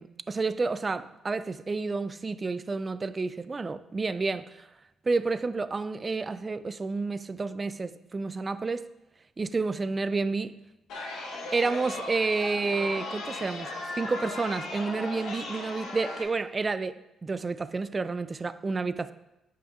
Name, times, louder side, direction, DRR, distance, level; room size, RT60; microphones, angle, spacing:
voice 1, 0.0-4.7 5.0-8.9 9.4-10.6 11.5-13.7 14.0-19.1, right 3 dB, 30° right, 0.3 m, -30 dB
Chatter, 10.9-16.2, left 2 dB, 85° left, 1.3 m, -37 dB
9.3 x 5.5 x 2.4 m
cardioid pair, 90°, 0 cm